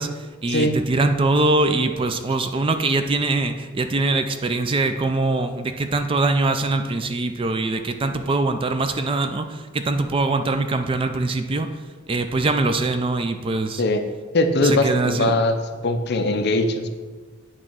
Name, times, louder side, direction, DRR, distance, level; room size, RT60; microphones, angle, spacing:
voice 1, 0.0-11.7 12.1-13.8 14.6-15.3, right 2 dB, 25° right, 8 dB, 0.4 m, -23 dB
voice 2, 14.3-15.5 15.8-16.9, left 2 dB, 50° left, 7 dB, 0.6 m, -20 dB
8.6 x 3.1 x 6.0 m, 1.5 s
head